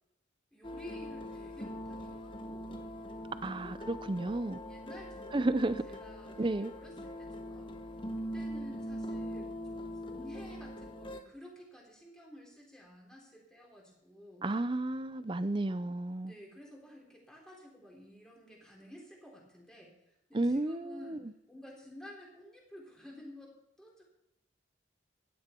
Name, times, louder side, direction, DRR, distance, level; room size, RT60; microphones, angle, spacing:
voice 1, 0.5-2.7 3.4-3.8 4.7-7.8 8.1-14.5 16.3-23.5 23.8-24.0, left 1 dB, 5° left, 3.8 m, -52 dB
sound 1, 0.6-11.2, equal, 25° left, 1.0 m, -42 dB
voice 2, 3.4-4.6 5.3-5.8 6.4-6.7 14.4-16.3 20.3-21.2, right 2 dB, 25° right, 0.5 m, -32 dB
16.0 x 11.0 x 4.5 m
head